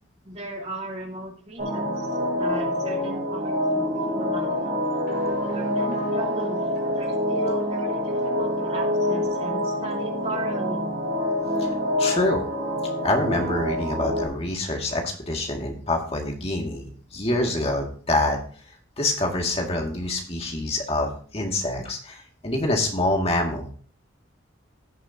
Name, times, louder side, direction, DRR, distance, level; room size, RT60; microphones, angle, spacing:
voice 1, 0.2-2.1 2.3-4.8 5.4-10.9, right 2 dB, 30° right, -1 dB, 2.6 m, -37 dB
sound 1, 1.6-14.3, left 1 dB, 50° right, 3.1 m, -26 dB
voice 2, 12.0-12.4 13.0-18.4 19.0-23.7, left 2 dB, 30° left, 1 dB, 2.1 m, -26 dB
16.5 x 6.7 x 2.8 m, 0.43 s
head